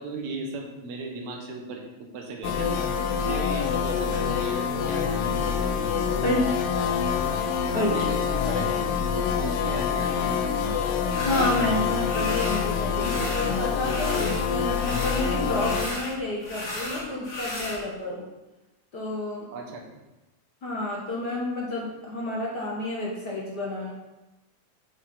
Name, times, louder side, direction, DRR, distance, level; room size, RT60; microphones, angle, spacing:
voice 1, 0.0-5.5 5.9-6.2 7.7-8.9 9.2-10.6 19.5-20.0, right 3 dB, 70° right, 1 dB, 2.5 m, -37 dB
sound 1, 2.4-15.9, left 6 dB, 85° left, 1.3 m, -26 dB
voice 2, 6.2-6.6 7.7-8.2 11.2-18.2 18.9-19.5 20.6-23.9, left 1 dB, 45° left, -4 dB, 1.5 m, -30 dB
sound 2, 11.1-11.6 12.0-12.6 12.9-14.4 14.7-17.8, left 1 dB, 30° left, 1.6 m, -35 dB
8.3 x 7.4 x 4.1 m, 1.0 s
omnidirectional pair, 3.5 m